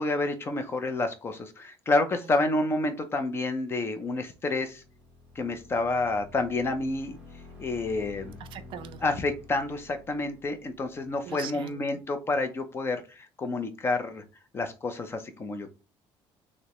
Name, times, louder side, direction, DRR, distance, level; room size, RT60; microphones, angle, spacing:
voice 1, 0.0-4.8 5.4-7.2 7.6-8.4 9.0-14.2 14.5-15.7, left 2 dB, 25° left, 0.5 m, -29 dB
sound 1, 4.3-11.8, left 3 dB, 15° right, 1.1 m, -50 dB
voice 2, 8.4-9.0 11.2-11.8, right 9 dB, 55° right, 0.5 m, -41 dB
6.4 x 2.1 x 3.0 m
cardioid pair, 170°, 10 cm